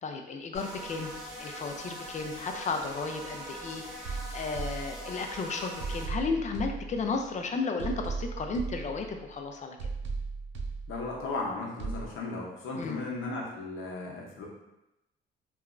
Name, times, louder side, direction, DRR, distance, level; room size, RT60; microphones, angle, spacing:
voice 1, 0.0-1.1 1.4-9.8 12.7-13.0, left 4 dB, 35° left, 4 dB, 0.4 m, -34 dB
sound 1, 0.5-6.1, equal, 5° right, 0.9 m, -42 dB
sound 2, 4.0-5.3 5.8-7.3 7.8-9.3 9.8-11.3 11.8-12.1, right 4 dB, 70° right, 0.5 m, -37 dB
voice 2, 10.9-14.5, left 3 dB, 80° left, -2 dB, 0.7 m, -36 dB
2.8 x 2.3 x 2.4 m, 0.92 s
cardioid pair, 90°, 20 cm